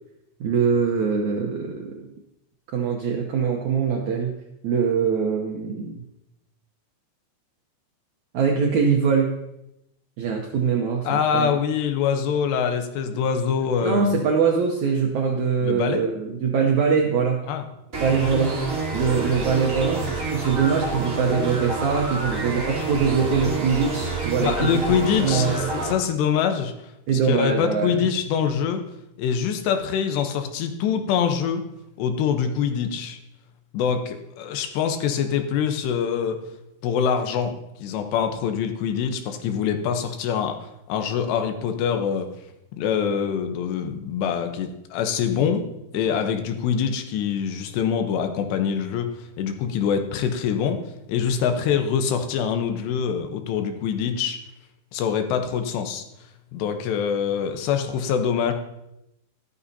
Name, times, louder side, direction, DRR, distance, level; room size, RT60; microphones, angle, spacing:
voice 1, 0.4-2.1 2.7-4.4 4.6-6.0 8.3-9.3 10.2-11.6 13.8-17.4 18.0-18.6 18.9-24.8 25.1-25.6 27.1-28.0, right 6 dB, 90° right, 1 dB, 1.6 m, -23 dB
voice 2, 11.0-14.1 15.6-16.0 17.5-17.6 24.4-26.7 27.2-28.8 29.2-31.6 32.0-33.2 33.7-36.4 36.8-37.5 37.8-42.3 42.8-45.6 45.9-50.8 51.1-54.4 54.9-56.0 56.5-58.5, left 7 dB, 90° left, 6 dB, 3.2 m, -24 dB
sound 1, 17.9-25.9, right 3 dB, 30° right, 1.5 m, -28 dB
13.5 x 12.5 x 2.8 m, 0.87 s
omnidirectional pair, 4.8 m